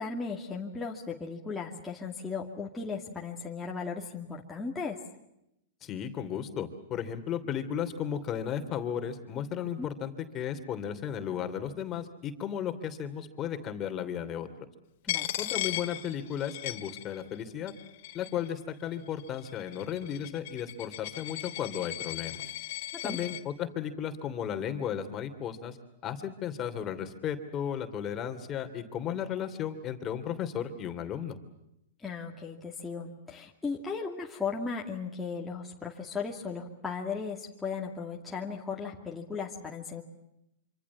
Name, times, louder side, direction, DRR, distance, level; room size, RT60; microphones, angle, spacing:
voice 1, 0.0-5.0 9.8-9.9 15.1-15.2 23.0-23.2 32.0-40.0, left 5 dB, 10° left, -2 dB, 2.4 m, -36 dB
voice 2, 5.8-14.5 15.4-17.7 18.1-22.4 23.0-25.8 26.0-31.4, left 9 dB, 25° left, 7 dB, 2.8 m, -34 dB
Coin (dropping), 15.1-17.4 17.7-18.5 19.2-23.4, left 14 dB, 60° left, 2.4 m, -37 dB
26.5 x 26.0 x 7.2 m, 0.83 s
hypercardioid pair, 145°, 0 cm